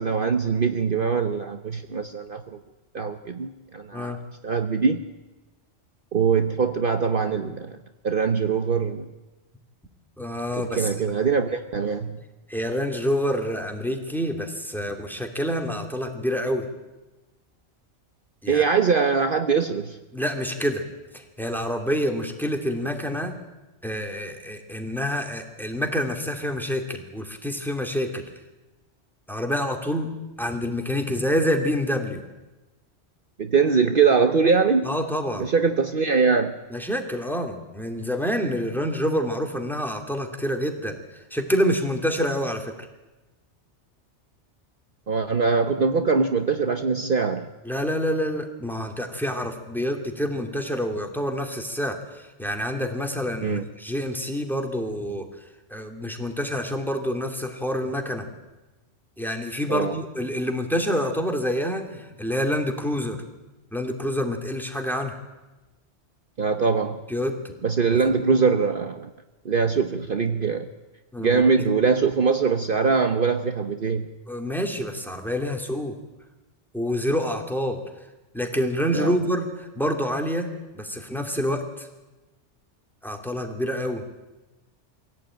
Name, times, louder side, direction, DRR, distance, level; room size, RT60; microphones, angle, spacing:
voice 1, 0.0-2.4 2.9-5.0 6.1-7.8 8.0-9.1 10.7-12.2 18.5-20.0 33.4-34.9 35.4-36.6 45.1-47.5 53.4-53.6 59.7-59.9 66.4-67.0 67.6-69.1 69.4-70.7 71.2-74.1 78.9-79.2, right 5 dB, 50° right, 7 dB, 1.1 m, -22 dB
voice 2, 10.2-10.9 12.5-16.7 18.4-18.6 20.1-20.8 21.1-23.4 23.8-28.2 29.3-30.1 30.4-32.2 34.8-35.5 36.7-42.7 47.7-55.3 55.7-58.2 59.2-63.2 63.7-65.1 67.1-67.5 67.9-68.0 71.1-71.4 74.3-75.9 76.7-77.8 78.3-81.9 83.0-84.0, equal, ahead, 3 dB, 2.8 m, -27 dB
25.0 x 17.0 x 9.1 m, 1.1 s
omnidirectional pair, 1.2 m